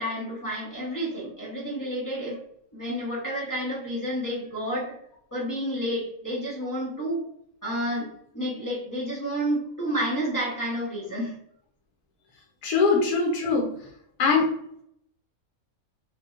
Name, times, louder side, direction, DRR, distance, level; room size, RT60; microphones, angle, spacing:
voice 1, 0.0-2.4 2.7-4.9 5.3-7.2 7.6-8.1 8.3-11.4, equal, 25° left, -6 dB, 0.4 m, -30 dB
voice 2, 12.6-13.7 14.2-14.5, left 4 dB, 85° left, 0 dB, 1.1 m, -22 dB
2.9 x 2.6 x 2.4 m, 0.70 s
omnidirectional pair, 1.5 m